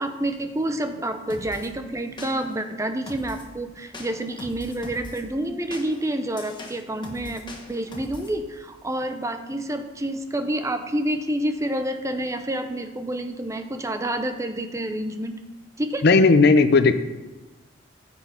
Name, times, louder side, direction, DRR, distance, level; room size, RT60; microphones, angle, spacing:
voice 1, 0.0-7.4 7.7-15.3 15.8-16.0, right 1 dB, 15° right, 7 dB, 0.7 m, -28 dB
sound 1, 1.3-1.7 2.2-2.6 3.1-3.5 3.9-5.2 5.7-8.3, left 1 dB, 25° left, 1.2 m, -41 dB
voice 2, 16.0-16.9, left 3 dB, 55° left, 11 dB, 0.6 m, -15 dB
9.6 x 7.3 x 4.4 m, 1.1 s
head